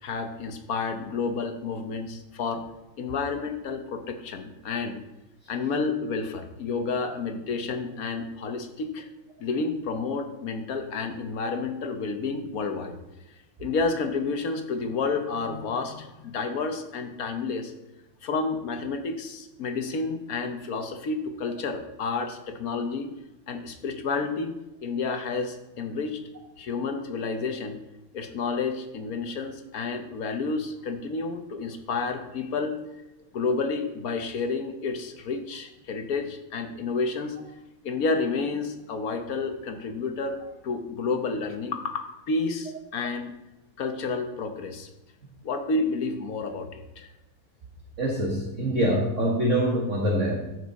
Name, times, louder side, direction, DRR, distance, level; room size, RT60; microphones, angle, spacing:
voice 1, 0.0-2.6 3.0-5.0 5.5-9.1 9.4-12.9 13.6-17.7 18.2-23.1 23.5-24.5 24.8-26.2 26.6-27.8 28.1-32.8 33.3-37.4 37.8-43.4 43.8-44.9 45.4-47.1, left 4 dB, 55° left, 6 dB, 1.2 m, -30 dB
voice 2, 48.0-50.5, equal, 40° right, -2 dB, 1.6 m, -25 dB
14.0 x 6.2 x 4.1 m, 0.97 s
omnidirectional pair, 2.2 m